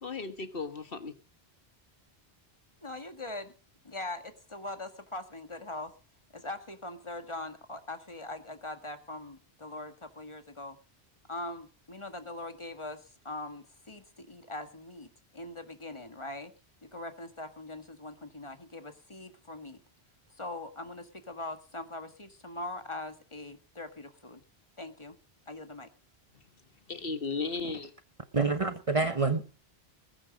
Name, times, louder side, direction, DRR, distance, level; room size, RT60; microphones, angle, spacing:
voice 1, 0.0-1.1 26.3-26.4 26.9-27.9, left 4 dB, 60° left, 1.5 m, -35 dB
voice 2, 2.8-3.5 3.8-5.9 6.3-10.8 11.3-13.0 13.2-15.1 15.3-16.5 16.8-19.8 20.4-24.4 24.8-25.1 25.5-25.9, left 2 dB, 30° left, 1.8 m, -41 dB
voice 3, 28.3-29.5, right 4 dB, 35° right, 1.0 m, -27 dB
20.0 x 9.6 x 5.2 m
omnidirectional pair, 1.1 m